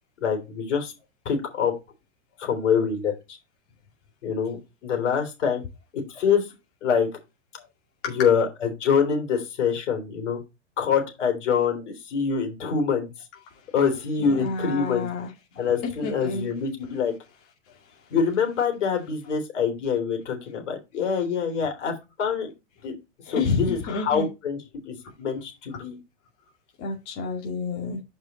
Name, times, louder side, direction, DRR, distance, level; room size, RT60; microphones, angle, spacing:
voice 1, 0.2-0.9 1.3-1.7 2.4-3.4 4.2-5.6 6.1-6.5 6.8-7.1 8.1-10.4 10.8-13.1 13.7-15.1 15.6-17.1 18.1-22.5 22.8-22.9 23.3-24.6 24.9-26.0, left 6 dB, 75° left, 4 dB, 3.4 m, -25 dB
voice 2, 14.2-15.3 16.0-16.5 17.7-17.8 23.3-24.3 25.7-25.8 26.8-28.0, left 4 dB, 40° left, -1 dB, 2.3 m, -29 dB
8.0 x 5.3 x 4.1 m, 0.25 s
hypercardioid pair, 115°, 37 cm